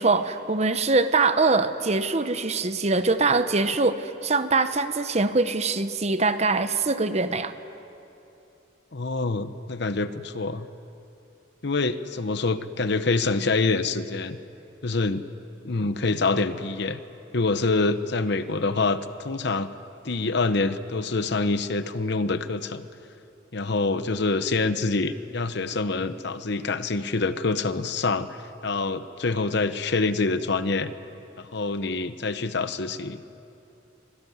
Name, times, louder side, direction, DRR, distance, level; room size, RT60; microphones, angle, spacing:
voice 1, 0.0-7.5, right 3 dB, 35° right, 11 dB, 0.9 m, -23 dB
voice 2, 8.9-10.7 11.6-14.4 14.8-15.2 15.6-17.0 17.3-19.7 20.0-22.8 23.5-28.3 28.6-30.9 31.4-33.2, left 3 dB, 60° left, 12 dB, 0.9 m, -26 dB
25.0 x 19.0 x 9.5 m, 2.8 s
head